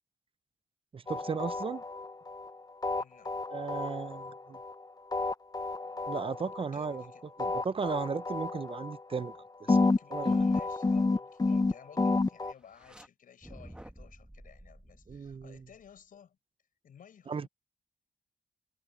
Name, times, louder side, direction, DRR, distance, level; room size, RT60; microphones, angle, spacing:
voice 1, 0.9-1.8 3.5-4.6 6.1-7.0 7.4-9.3 10.1-10.4 15.1-15.6 17.3-17.5, right 5 dB, 40° right, 0.6 m, -35 dB
sound 1, 1.1-2.5 2.8-4.7 5.1-7.1 7.4-9.4 9.7-12.5, left 3 dB, 25° left, 1.0 m, -30 dB
voice 2, 3.0-3.5 6.6-7.2 9.7-16.4 16.8-17.5, left 8 dB, 80° left, 5.4 m, -55 dB
sound 2, 12.6-13.1 13.4-16.0, right 1 dB, 5° right, 1.6 m, -51 dB
cardioid pair, 85°, 14 cm